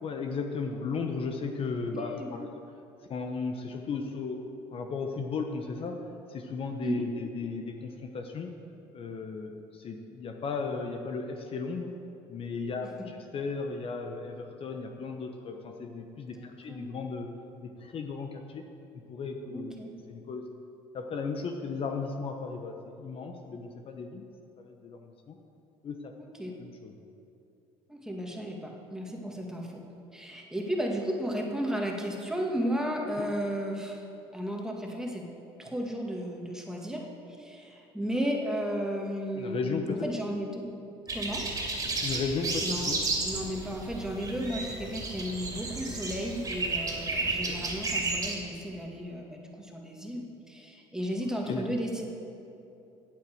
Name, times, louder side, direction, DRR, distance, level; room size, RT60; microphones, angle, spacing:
voice 1, 0.0-2.6 3.1-6.0 6.3-8.5 8.9-11.9 12.3-17.3 17.6-18.7 19.1-19.7 20.1-20.4 20.9-24.3 24.6-25.4 25.8-26.1 26.6-26.9 33.2-33.3 39.3-40.1 42.0-43.0 47.2-47.6 51.5-51.7, left 4 dB, 45° left, 4 dB, 1.0 m, -35 dB
voice 2, 1.9-2.3 6.8-7.1 16.4-16.9 19.5-19.9 26.2-26.5 27.9-29.8 30.1-34.0 34.3-35.3 35.6-37.0 37.3-40.7 41.1-41.4 42.6-42.9 43.2-52.0, equal, 5° right, 0 dB, 1.9 m, -34 dB
sound 1, 41.1-48.3, right 3 dB, 25° right, 2.7 m, -33 dB
8.6 x 8.5 x 7.8 m, 2.8 s
supercardioid pair, 90°, 13 cm